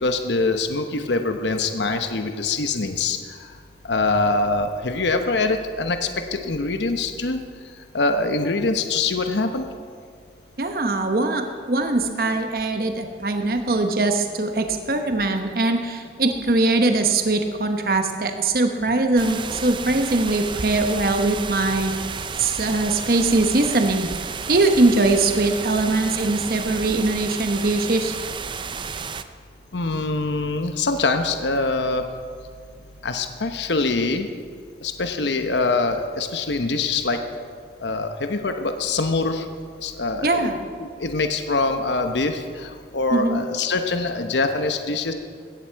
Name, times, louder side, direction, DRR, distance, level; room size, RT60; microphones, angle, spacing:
voice 1, 0.0-3.2 3.9-7.4 7.9-9.6 29.7-32.1 33.0-34.3 34.8-37.2 37.8-39.4 39.8-40.5 40.8-45.1, left 3 dB, 85° left, 7 dB, 1.0 m, -24 dB
voice 2, 10.6-24.1 24.5-28.1 40.2-40.6 43.1-43.4, right 2 dB, 55° right, 5 dB, 1.0 m, -21 dB
sound 1, 19.2-29.2, right 5 dB, 25° right, 0.5 m, -32 dB
17.5 x 14.0 x 4.6 m, 2.1 s
head